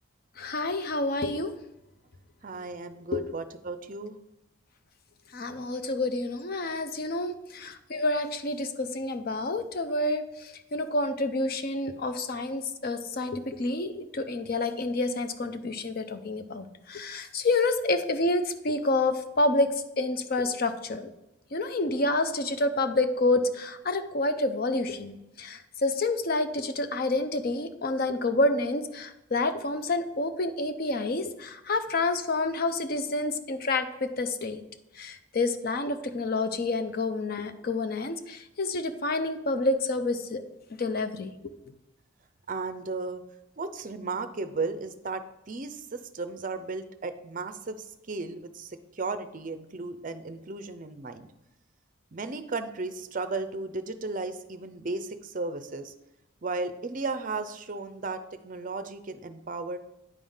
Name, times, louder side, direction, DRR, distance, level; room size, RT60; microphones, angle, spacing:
voice 1, 0.4-1.5 3.1-3.2 5.3-19.7 20.0-21.1 21.5-34.6 35.0-40.4 40.8-41.3, left 2 dB, 45° left, 9 dB, 0.5 m, -28 dB
voice 2, 2.4-4.2 7.6-7.7 42.5-43.2 43.6-51.3 52.1-55.9 56.4-59.8, right 3 dB, 40° right, 10 dB, 0.5 m, -35 dB
9.4 x 3.7 x 5.4 m, 0.94 s
head